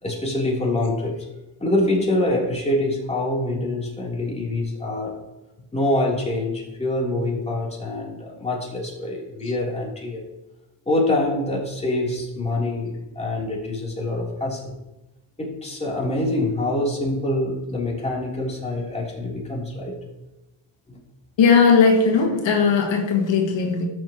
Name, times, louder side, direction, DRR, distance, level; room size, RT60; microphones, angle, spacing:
voice 1, 0.0-1.2 1.6-5.2 5.7-10.2 10.8-14.7 15.4-20.0 20.9-21.0, left 1 dB, 15° left, -4 dB, 3.4 m, -25 dB
voice 2, 21.4-23.9, left 5 dB, 75° left, 0 dB, 2.1 m, -18 dB
13.5 x 6.7 x 3.0 m, 1.0 s
cardioid pair, 100°, 45 cm